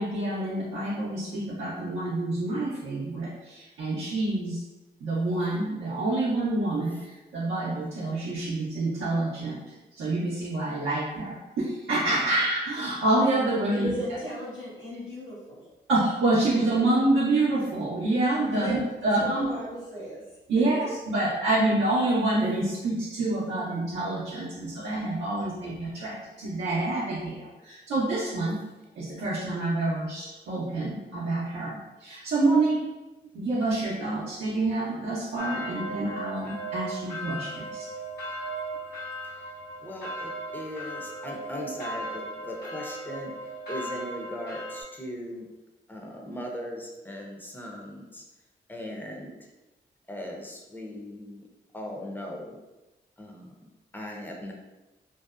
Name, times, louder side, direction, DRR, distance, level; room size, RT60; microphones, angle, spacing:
voice 1, 0.0-4.6 5.0-9.6 9.9-13.9 15.9-18.8 19.0-19.4 20.5-28.6 29.0-32.8 33.3-37.9, right 2 dB, 80° right, -8 dB, 0.6 m, -27 dB
voice 2, 13.6-15.6 18.5-20.2 25.5-25.6, equal, 85° left, -10 dB, 1.2 m, -36 dB
sound 1, 35.4-44.8, right 1 dB, 60° left, 1.0 m, -37 dB
voice 3, 39.8-45.5 45.9-48.3 48.7-49.5 50.1-51.5 51.7-52.6 53.2-53.7 53.9-54.5, left 1 dB, 10° left, 0 dB, 0.6 m, -39 dB
2.6 x 2.0 x 2.4 m, 1.1 s
cardioid pair, 55°, 19 cm